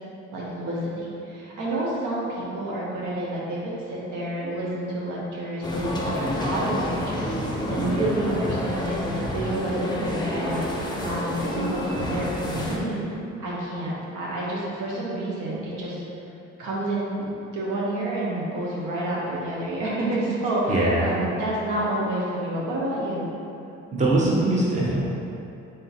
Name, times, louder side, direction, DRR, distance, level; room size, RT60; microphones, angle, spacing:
voice 1, 0.3-16.0 16.6-23.3, right 1 dB, 90° right, -5 dB, 1.0 m, -29 dB
sound 1, 5.6-12.8, left 1 dB, 15° left, 0.6 m, -29 dB
voice 2, 20.7-21.2 23.9-25.1, right 2 dB, 25° right, -5 dB, 0.7 m, -22 dB
3.6 x 2.6 x 4.0 m, 2.7 s
cardioid pair, 90°, 30 cm